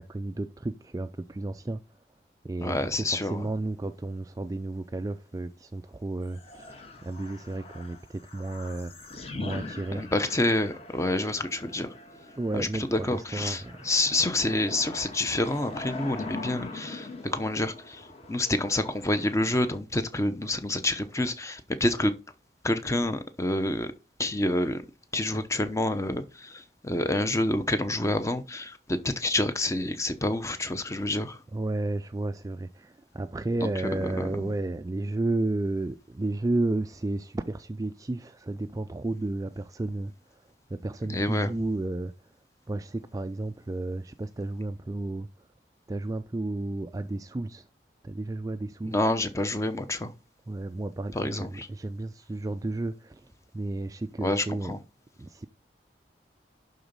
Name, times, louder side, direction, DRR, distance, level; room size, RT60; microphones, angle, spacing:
voice 1, 0.0-1.8 2.4-8.9 9.4-10.0 12.4-13.9 31.5-40.1 40.7-42.1 42.7-45.3 45.9-47.7 48.0-48.9 50.5-53.2 53.5-54.7 55.2-55.5, right 2 dB, 20° right, 0.3 m, -32 dB
voice 2, 2.6-3.5 9.9-11.9 12.5-22.1 22.6-23.9 24.2-24.8 25.1-31.4 33.6-34.6 41.0-41.5 48.8-50.1 51.1-51.7 54.2-54.8, left 1 dB, 15° left, 0.8 m, -28 dB
sound 1, 6.2-19.8, left 2 dB, 35° left, 1.7 m, -42 dB
11.0 x 4.0 x 5.2 m
head